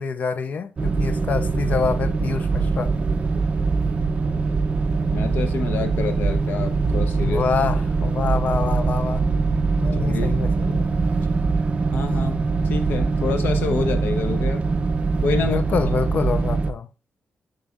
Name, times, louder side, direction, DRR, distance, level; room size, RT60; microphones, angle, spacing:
voice 1, 0.0-2.9 7.2-9.2 9.8-10.9 15.3-16.9, left 5 dB, 50° left, 0.5 m, -26 dB
sound 1, 0.8-16.7, right 4 dB, 35° right, 0.6 m, -22 dB
voice 2, 5.1-7.4 9.9-10.3 10.7-10.8 11.3-11.4 11.9-14.6 15.2-15.6, left 5 dB, 75° left, 0.8 m, -28 dB
7.4 x 6.5 x 2.4 m
wide cardioid pair, 150°, 3 cm